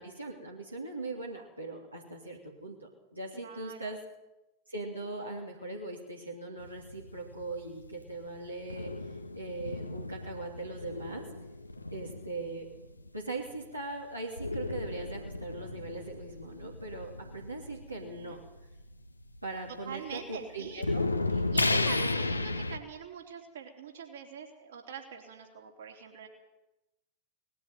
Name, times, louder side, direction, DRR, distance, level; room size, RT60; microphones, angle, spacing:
voice 1, 0.0-4.0 4.7-11.3 11.9-12.7 13.1-18.4 19.4-21.1 21.7-21.9, right 2 dB, 85° right, -2 dB, 2.9 m, -40 dB
voice 2, 3.3-3.9 17.9-18.4 19.8-20.9 21.3-26.3, right 7 dB, 60° right, 2 dB, 3.7 m, -44 dB
sound 1, 6.6-13.6 14.4-20.2 20.6-22.8, left 2 dB, 85° left, 0.9 m, -34 dB
20.0 x 14.0 x 9.3 m, 0.97 s
figure-of-eight pair, 90°, 0 cm